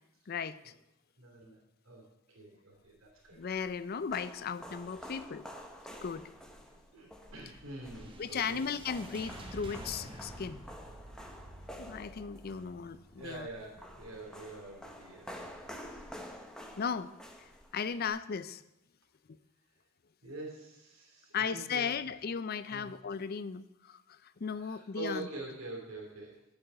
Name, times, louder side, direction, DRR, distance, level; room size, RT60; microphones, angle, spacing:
voice 1, 0.3-0.7 3.3-5.4 6.0-6.3 8.2-10.6 11.0-11.1 11.8-13.5 16.8-17.1 17.7-18.6 21.3-25.3, left 6 dB, 45° left, 15 dB, 0.4 m, -36 dB
voice 2, 1.2-3.5 5.0-5.2 6.7-8.6 13.2-16.0 20.2-22.1 22.7-22.9 24.6-26.4, right 2 dB, 85° right, -2 dB, 2.9 m, -46 dB
sound 1, 3.1-18.1, equal, 5° left, 1.0 m, -49 dB
sound 2, 7.9-16.3, right 1 dB, 25° right, 1.1 m, -50 dB
7.8 x 6.9 x 8.0 m, 0.89 s
head